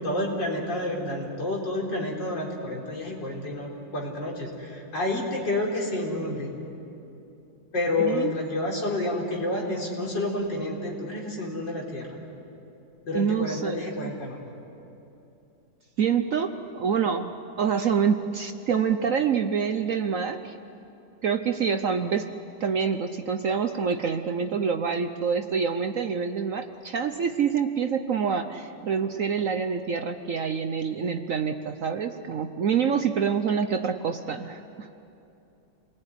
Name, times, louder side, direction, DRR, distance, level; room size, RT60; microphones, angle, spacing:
voice 1, 0.0-6.5 7.7-12.2 13.1-14.4, left 2 dB, 70° left, -2 dB, 4.7 m, -29 dB
voice 2, 8.0-8.3 13.1-14.1 16.0-17.3 17.6-20.6 21.2-22.3 22.6-34.9, right 6 dB, 55° right, 7 dB, 1.0 m, -26 dB
28.0 x 20.0 x 9.8 m, 2.8 s
omnidirectional pair, 2.0 m